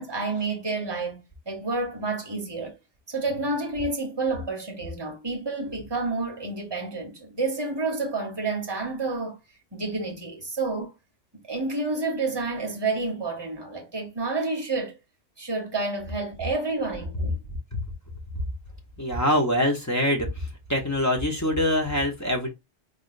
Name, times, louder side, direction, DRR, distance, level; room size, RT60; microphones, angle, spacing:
voice 1, 0.0-2.8 3.1-9.4 9.7-10.9 11.4-14.9 15.4-17.4, right 3 dB, 25° right, 1.1 m, -29 dB
voice 2, 19.0-22.5, left 1 dB, 15° left, 0.9 m, -24 dB
4.9 x 2.6 x 2.5 m
omnidirectional pair, 1.2 m